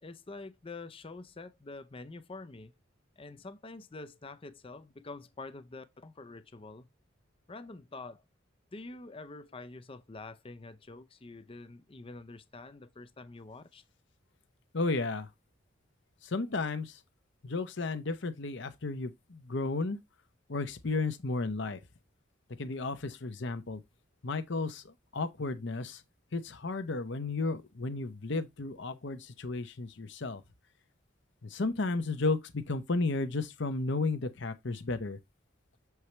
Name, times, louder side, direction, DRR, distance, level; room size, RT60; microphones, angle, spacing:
voice 1, 0.0-2.7 3.2-6.9 7.5-8.2 8.7-13.8, left 3 dB, 25° left, 0.6 m, -46 dB
voice 2, 14.7-15.3 16.2-17.0 17.4-20.0 20.5-21.8 22.6-23.8 24.2-26.0 26.3-30.4 31.4-35.2, left 3 dB, 60° left, 0.9 m, -33 dB
7.0 x 4.6 x 3.3 m
head